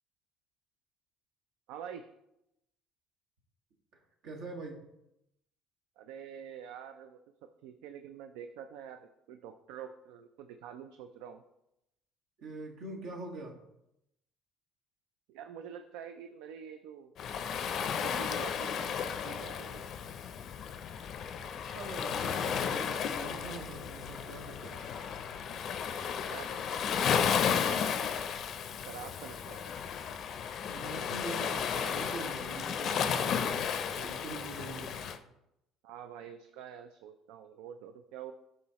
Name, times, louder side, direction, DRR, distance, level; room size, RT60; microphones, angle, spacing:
voice 1, 1.7-2.1 6.0-7.2 7.6-11.4 15.3-17.2 17.8-19.9 26.2-26.6 27.6-27.8 28.9-29.7 35.8-38.3, right 8 dB, 90° right, 7 dB, 0.4 m, -46 dB
voice 2, 4.2-4.8 12.4-13.6 21.6-24.8 30.7-35.1, right 2 dB, 75° right, 0 dB, 1.6 m, -44 dB
Waves surf, 17.2-35.2, left 7 dB, 50° left, 0.4 m, -34 dB
10.5 x 3.8 x 2.9 m, 0.84 s
cardioid pair, 125°, 0 cm